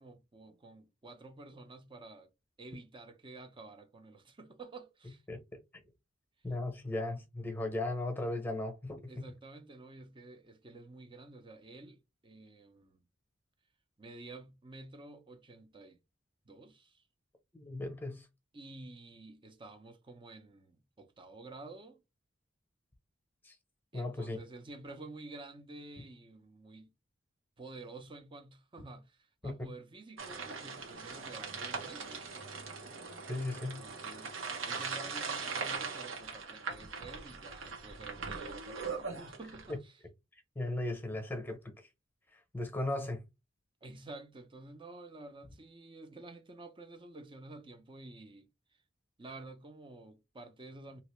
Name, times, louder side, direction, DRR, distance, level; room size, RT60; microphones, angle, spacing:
voice 1, 0.0-2.3 2.6-5.2 9.1-13.0 14.0-16.0 16.4-17.0 18.5-22.0 23.9-26.9 27.6-32.2 33.8-40.0 43.8-48.5 49.2-51.0, right 2 dB, 25° right, 0.6 m, -50 dB
voice 2, 5.3-5.6 6.4-9.1 17.5-18.3 23.4-23.5 23.9-24.4 29.4-29.7 33.3-33.8 40.5-41.7 42.5-43.2, left 2 dB, 10° left, 0.9 m, -36 dB
sound 1, 30.2-39.7, right 5 dB, 80° right, 1.2 m, -40 dB
2.9 x 2.7 x 3.1 m
head